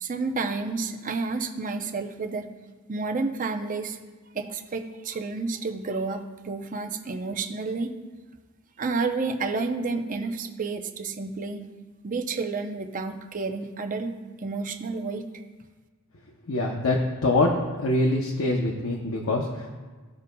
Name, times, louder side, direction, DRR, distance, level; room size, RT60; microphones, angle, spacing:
voice 1, 0.0-2.5 2.9-4.0 4.3-7.9 8.8-11.7 12.0-14.1 14.4-15.2, right 4 dB, 35° right, 6 dB, 0.6 m, -30 dB
voice 2, 16.5-17.5 17.8-19.7, left 2 dB, 65° left, 0 dB, 0.8 m, -24 dB
15.5 x 5.2 x 2.2 m, 1.4 s
head